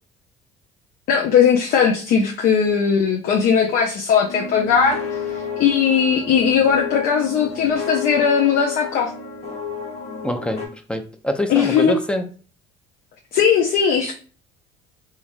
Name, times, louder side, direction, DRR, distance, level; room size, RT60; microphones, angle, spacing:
voice 1, 1.1-5.0 5.6-9.1 11.5-11.9 13.3-14.1, left 7 dB, 65° left, 1 dB, 0.5 m, -18 dB
sound 1, 4.2-10.7, left 5 dB, 45° left, 0.9 m, -31 dB
voice 2, 10.2-12.3, left 1 dB, 5° left, 7 dB, 0.5 m, -25 dB
2.9 x 2.5 x 2.5 m, 0.39 s
supercardioid pair, 85°, 16 cm